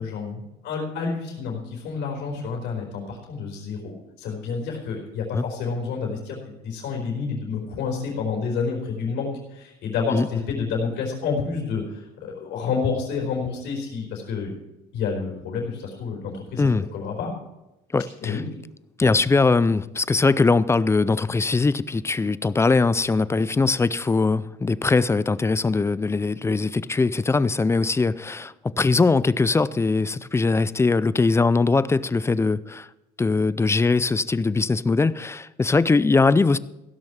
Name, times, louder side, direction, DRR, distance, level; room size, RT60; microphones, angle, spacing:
voice 1, 0.0-14.5 14.9-17.3 18.2-18.4, left 5 dB, 85° left, -1 dB, 4.0 m, -29 dB
voice 2, 17.9-18.4 19.0-32.9 33.2-36.6, left 3 dB, 15° left, 18 dB, 0.4 m, -21 dB
16.0 x 6.3 x 7.3 m, 0.96 s
cardioid pair, 110°, 17 cm